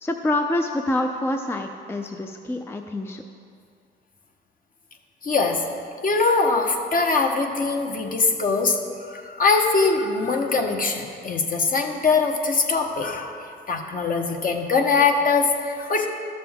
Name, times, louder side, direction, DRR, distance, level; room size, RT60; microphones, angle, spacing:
voice 1, 0.0-3.2, left 1 dB, 10° left, 4 dB, 0.5 m, -26 dB
voice 2, 5.2-5.6 6.0-8.8 9.1-16.1, left 4 dB, 45° left, 3 dB, 1.1 m, -22 dB
12.5 x 6.8 x 3.6 m, 2.3 s
cardioid pair, 90°, 20 cm